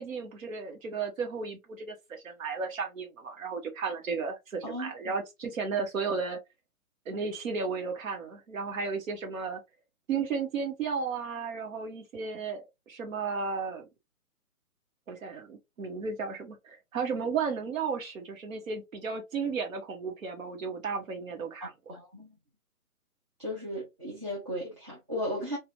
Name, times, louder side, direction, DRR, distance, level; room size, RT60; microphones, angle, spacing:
voice 1, 0.0-1.9 2.2-6.4 7.1-9.6 10.1-13.9 15.1-21.7, right 5 dB, 60° right, 1.2 m, -34 dB
voice 2, 4.6-5.1 21.6-22.3 23.4-25.6, equal, 20° right, 0.5 m, -36 dB
2.5 x 2.5 x 3.0 m
hypercardioid pair, 150°, 44 cm